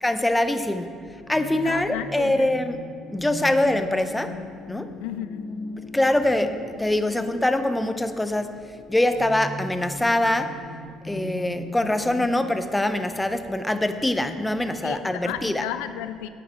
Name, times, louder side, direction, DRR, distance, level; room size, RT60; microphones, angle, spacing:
voice 1, 0.0-1.0 1.3-2.8 3.1-4.3 4.7-4.9 5.9-8.6 8.9-10.6 11.0-15.6, left 1 dB, 10° left, 10 dB, 0.6 m, -24 dB
sound 1, 0.8-12.3, left 1 dB, 45° left, 1.1 m, -39 dB
voice 2, 1.5-2.4 5.0-5.4 14.8-16.3, left 12 dB, 85° left, 12 dB, 0.4 m, -33 dB
9.2 x 8.8 x 5.0 m, 2.3 s
supercardioid pair, 80°, 0 cm